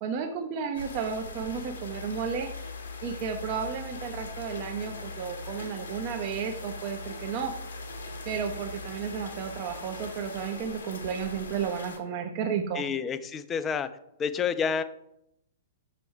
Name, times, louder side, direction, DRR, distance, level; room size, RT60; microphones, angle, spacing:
voice 1, 0.0-2.5 3.0-7.5 8.3-12.8, right 7 dB, 40° right, 4 dB, 0.6 m, -33 dB
sound 1, 0.7-12.0, left 3 dB, 70° left, 1.0 m, -40 dB
voice 2, 12.7-13.9 14.2-14.8, left 6 dB, 20° left, 12 dB, 0.4 m, -29 dB
6.0 x 3.3 x 4.7 m, 0.79 s
figure-of-eight pair, 110°, 0 cm